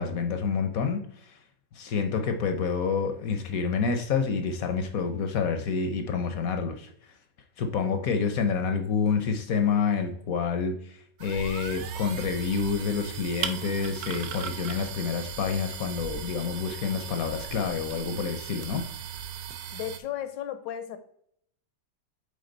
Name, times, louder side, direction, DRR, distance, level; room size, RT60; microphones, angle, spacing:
voice 1, 0.0-1.4 1.7-6.9 7.6-18.9, left 5 dB, 60° left, 6 dB, 1.0 m, -28 dB
sound 1, 11.2-20.0, right 8 dB, 65° right, 1.0 m, -38 dB
voice 2, 19.7-21.0, left 11 dB, 80° left, 11 dB, 1.4 m, -35 dB
8.8 x 3.7 x 3.8 m, 0.68 s
omnidirectional pair, 2.0 m